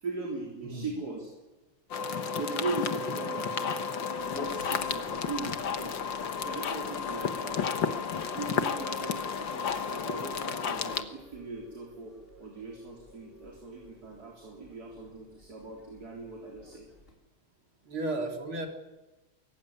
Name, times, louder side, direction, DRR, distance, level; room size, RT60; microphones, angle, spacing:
voice 1, 0.0-1.3 2.3-3.8 4.2-6.0 6.4-7.7 8.3-16.9, right 3 dB, 45° right, 0 dB, 4.3 m, -39 dB
voice 2, 0.6-1.0 4.6-4.7 17.8-18.7, right 2 dB, 80° right, 4 dB, 4.5 m, -34 dB
sound 1, 1.9-11.0, left 6 dB, 65° left, 2.1 m, -32 dB
sound 2, 4.1-17.1, equal, 25° left, 4.5 m, -55 dB
24.5 x 22.5 x 9.9 m, 1.1 s
omnidirectional pair, 2.3 m